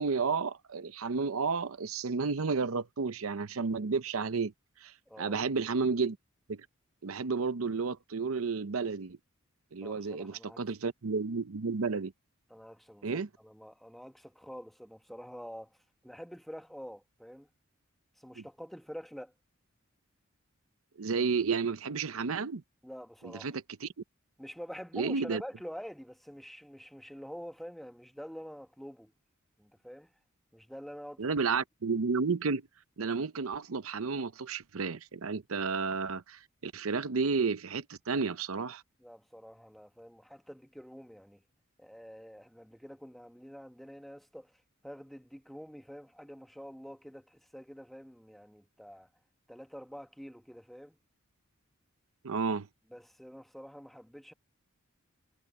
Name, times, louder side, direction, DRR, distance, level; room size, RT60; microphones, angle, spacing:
voice 1, 0.0-4.5 4.8-6.2 6.5-6.7 7.0-9.2 9.7-12.1 13.0-13.3 18.4-18.5 21.0-22.6 23.2-23.9 24.9-25.4 31.2-32.6 33.0-38.8 52.2-52.7, right 4 dB, 80° right, 0.7 m, -32 dB
voice 2, 9.8-10.6 12.5-17.5 18.2-19.3 22.8-23.5 24.4-29.1 29.6-30.1 30.5-31.4 39.0-41.4 41.8-49.1 49.5-51.0 52.9-54.3, equal, ahead, 1.3 m, -47 dB
head